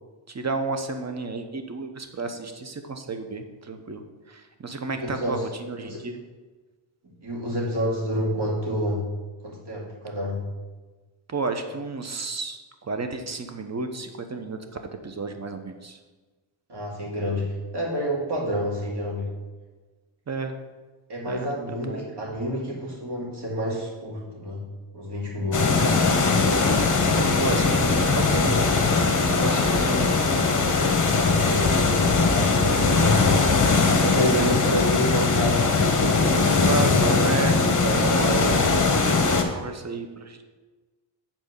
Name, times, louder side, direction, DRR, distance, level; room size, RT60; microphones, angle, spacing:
voice 1, 0.3-4.0 4.3-6.2 11.3-14.6 15.0-16.0 20.3-20.6 21.3-21.5 21.8-22.0 25.6-26.2 27.0-30.2 36.6-37.6 38.1-40.4, right 3 dB, 35° right, 7 dB, 1.0 m, -32 dB
voice 2, 5.0-5.4 5.8-6.0 7.0-9.1 9.4-10.5 16.7-19.3 21.1-24.6 24.9-26.2 31.1-33.4 34.0-35.6 36.0-38.9, equal, 55° right, -3 dB, 2.7 m, -29 dB
sound 1, 25.5-39.4, left 4 dB, 40° left, 1.3 m, -20 dB
8.2 x 4.4 x 6.8 m, 1.3 s
cardioid pair, 85°, 49 cm